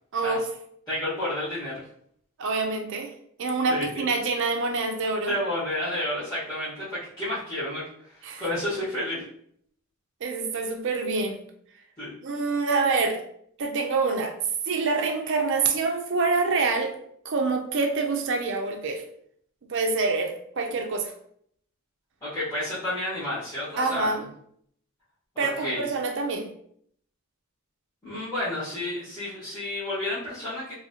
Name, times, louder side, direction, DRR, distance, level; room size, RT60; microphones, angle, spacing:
voice 1, 0.1-0.4 2.4-3.1 3.4-5.3 8.2-8.5 10.2-11.4 12.2-13.2 13.6-14.4 14.6-16.9 17.2-19.0 19.7-21.1 23.8-24.2 25.4-26.5, right 4 dB, 55° right, 4 dB, 0.5 m, -26 dB
voice 2, 0.9-1.8 3.7-4.0 5.3-9.2 12.0-12.1 22.2-24.1 25.3-25.9 28.0-30.7, left 1 dB, 15° left, -14 dB, 1.2 m, -31 dB
2.8 x 2.7 x 2.7 m, 0.66 s
head